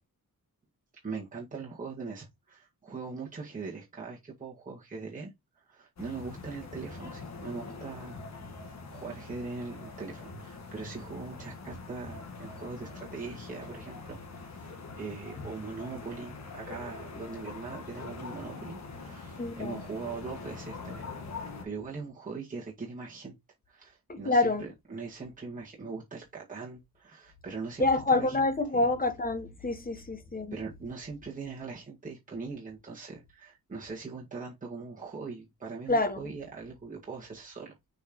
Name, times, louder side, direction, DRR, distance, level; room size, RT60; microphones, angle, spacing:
voice 1, 1.0-8.2 8.6-14.2 14.4-21.0 21.3-23.4 23.7-28.5 28.7-28.9 30.5-37.8, right 4 dB, 20° right, 1.9 m, -41 dB
sound 1, 6.0-21.6, left 4 dB, 45° left, 1.6 m, -43 dB
voice 2, 19.4-19.8 24.1-24.6 27.8-30.5 35.9-36.2, left 2 dB, 25° left, 1.1 m, -27 dB
6.3 x 5.3 x 3.0 m
wide cardioid pair, 125°, 36 cm